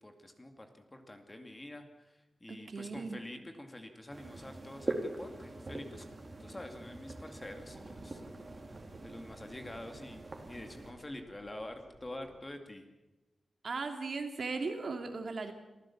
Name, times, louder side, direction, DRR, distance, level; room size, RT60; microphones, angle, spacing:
voice 1, 0.0-6.1 6.4-8.2 8.7-12.8, left 1 dB, 20° left, 5 dB, 2.3 m, -47 dB
voice 2, 2.7-3.2 13.6-15.5, right 4 dB, 55° right, 5 dB, 2.7 m, -37 dB
sound 1, 4.1-10.9, right 2 dB, 30° right, 3.3 m, -43 dB
sound 2, 7.4-12.4, right 3 dB, 75° right, 4.7 m, -60 dB
26.0 x 15.5 x 7.2 m, 1.1 s
wide cardioid pair, 125°, 0 cm